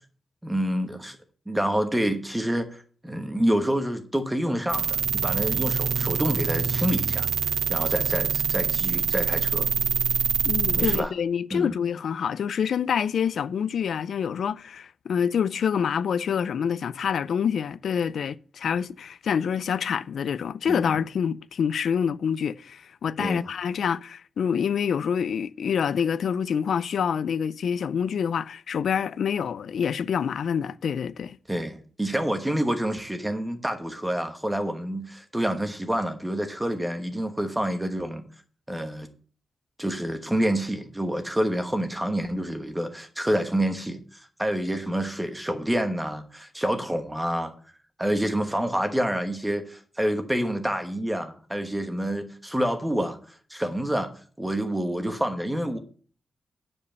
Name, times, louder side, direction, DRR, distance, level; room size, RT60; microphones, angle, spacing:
voice 1, 0.4-1.2 1.5-2.8 3.0-7.3 7.7-9.7 10.7-11.1 11.5-11.7 20.6-20.9 23.2-23.5 31.5-38.2 38.7-39.1 39.8-44.0 44.4-47.5 48.0-53.2 53.5-54.1 54.4-55.8, right 1 dB, 5° right, 1.1 m, -27 dB
sound 1, 4.7-11.0, right 7 dB, 70° right, 0.6 m, -25 dB
voice 2, 10.5-31.4, left 7 dB, 75° left, 0.4 m, -27 dB
9.5 x 5.3 x 6.7 m
wide cardioid pair, 175°, 0 cm